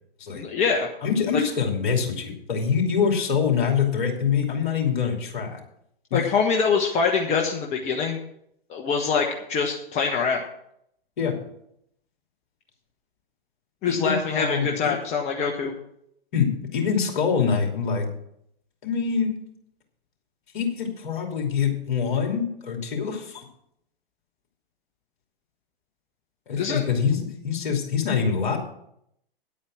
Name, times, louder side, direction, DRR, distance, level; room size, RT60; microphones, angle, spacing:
voice 1, 0.3-0.9 1.3-1.4 6.1-8.2 8.7-10.4 13.8-15.7 26.6-26.8, left 5 dB, 20° left, 1 dB, 1.2 m, -24 dB
voice 2, 1.0-5.6 6.1-6.2 11.2-11.4 13.9-14.9 16.3-18.1 18.8-19.3 20.5-23.4 26.5-28.6, left 6 dB, 55° left, 2 dB, 2.9 m, -25 dB
10.0 x 8.6 x 6.1 m, 0.74 s
figure-of-eight pair, 115°, 30 cm